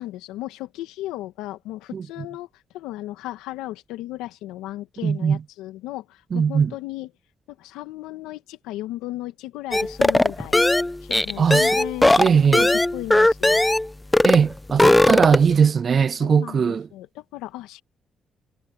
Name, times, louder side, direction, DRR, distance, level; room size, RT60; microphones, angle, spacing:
voice 1, 0.0-2.5 2.7-7.1 7.5-10.6 11.0-13.7 15.1-15.2 16.2-17.8, left 16 dB, 85° left, 2.0 m, -35 dB
voice 2, 5.0-5.4 6.3-6.7 11.4-11.7 12.2-12.7 14.2-16.9, right 6 dB, 50° right, 0.3 m, -19 dB
sound 1, 9.7-13.9 14.1-14.4 14.7-15.5, left 1 dB, 15° left, 0.9 m, -18 dB
supercardioid pair, 55°, 0 cm